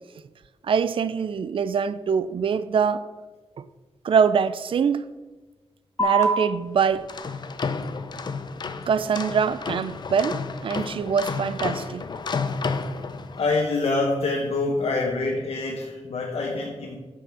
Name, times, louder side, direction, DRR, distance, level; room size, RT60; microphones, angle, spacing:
voice 1, 0.6-3.0 3.6-3.7 4.0-5.0 6.0-7.1 8.9-12.1, right 6 dB, 55° right, 0.4 m, -24 dB
sound 1, 6.0-13.0, right 3 dB, 25° left, 1.3 m, -33 dB
sound 2, 6.9-13.6, left 4 dB, 40° left, 0.6 m, -31 dB
voice 2, 13.4-17.0, left 3 dB, 65° left, 1.4 m, -25 dB
9.1 x 7.0 x 6.1 m
wide cardioid pair, 170°, 11 cm